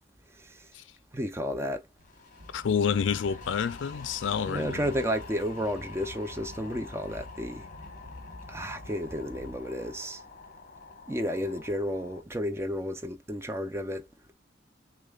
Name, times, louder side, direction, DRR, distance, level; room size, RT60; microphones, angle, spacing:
voice 1, 0.4-0.7 1.1-1.8 4.5-7.6 8.5-10.2 11.1-14.0, equal, 15° right, 0.6 m, -32 dB
sound 1, 2.0-12.2, left 4 dB, 45° left, 1.1 m, -47 dB
sound 2, 2.4-9.6, left 1 dB, 60° right, 1.2 m, -48 dB
voice 2, 2.5-4.9, left 7 dB, 85° left, 0.4 m, -28 dB
6.4 x 2.2 x 2.3 m
head